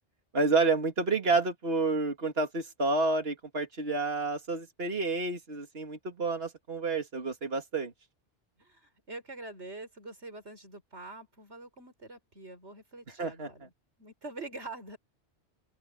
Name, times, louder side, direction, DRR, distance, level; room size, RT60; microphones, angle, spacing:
voice 1, 0.3-7.9 13.2-13.5, right 3 dB, 60° right, 2.7 m, -29 dB
voice 2, 8.6-13.7 14.0-15.0, right 2 dB, 75° right, 5.9 m, -45 dB
open air
omnidirectional pair, 1.2 m